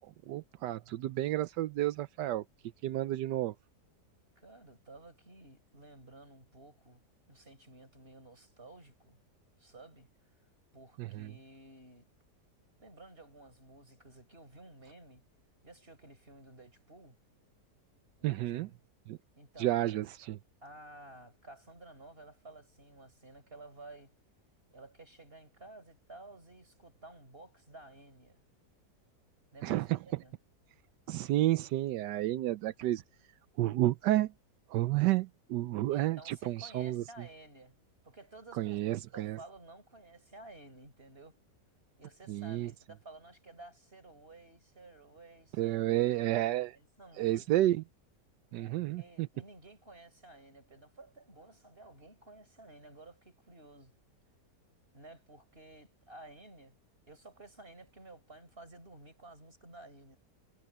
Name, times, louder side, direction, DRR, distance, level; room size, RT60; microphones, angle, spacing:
voice 1, 0.3-2.4 2.8-3.5 11.0-11.3 18.2-18.7 19.1-19.2 19.6-20.4 29.6-30.0 31.1-33.0 33.6-34.3 34.7-37.0 38.5-39.4 42.3-42.7 45.6-46.8 47.2-47.8 48.5-49.3, right 15 dB, 85° right, 1.3 m, -31 dB
voice 2, 4.4-9.2 9.6-10.1 10.7-12.1 12.8-15.3 15.6-17.2 18.2-18.7 19.4-19.8 20.6-24.2 24.7-28.4 29.5-30.4 35.9-37.8 38.0-41.4 42.0-46.3 46.7-47.5 48.6-54.0 54.9-56.8 57.1-60.2, right 2 dB, 35° right, 5.5 m, -53 dB
omnidirectional pair, 1.8 m